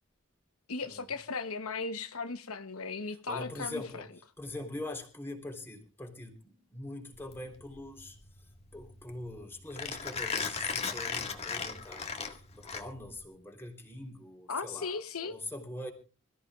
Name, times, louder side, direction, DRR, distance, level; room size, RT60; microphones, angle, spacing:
voice 1, 0.7-4.0 14.5-15.3, left 4 dB, 75° left, 1.0 m, -37 dB
voice 2, 3.1-4.1 4.4-15.9, left 1 dB, 10° left, 3.6 m, -43 dB
Mechanisms, 7.1-13.2, left 5 dB, 30° left, 1.9 m, -37 dB
26.0 x 14.5 x 2.5 m
head